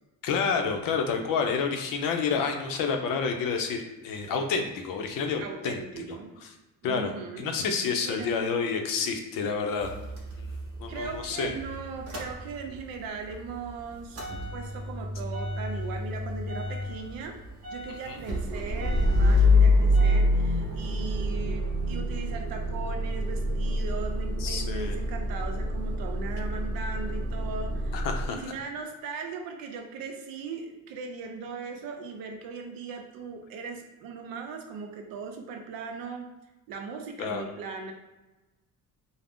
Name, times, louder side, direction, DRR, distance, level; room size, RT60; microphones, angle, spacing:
voice 1, 0.2-6.2 6.8-7.1 7.4-9.9 10.4-10.5 10.8-11.5 18.1-18.2 24.4-25.0 27.9-28.4 37.2-37.4, left 5 dB, 75° left, 4 dB, 0.5 m, -29 dB
voice 2, 5.4-6.3 6.8-7.5 8.0-8.4 10.9-14.2 14.5-17.4 17.7-28.0 28.3-36.3 36.7-37.9, right 5 dB, 85° right, 4 dB, 0.6 m, -38 dB
Motor vehicle (road) / Engine starting / Idling, 9.8-13.0 13.3-28.3, left 1 dB, 45° right, 0.7 m, -27 dB
2.5 x 2.0 x 3.4 m, 1.1 s
cardioid pair, 110°, 34 cm